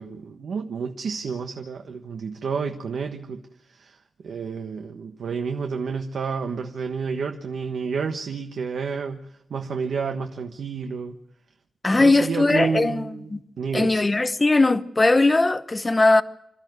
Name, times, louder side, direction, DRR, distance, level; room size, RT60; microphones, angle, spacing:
voice 1, 0.0-11.2 11.9-13.3 13.6-14.1, right 5 dB, 80° right, 1.3 m, -30 dB
voice 2, 11.8-13.4 13.7-16.2, left 2 dB, 20° left, 1.0 m, -19 dB
27.5 x 13.5 x 9.5 m
wide cardioid pair, 165°, 0 cm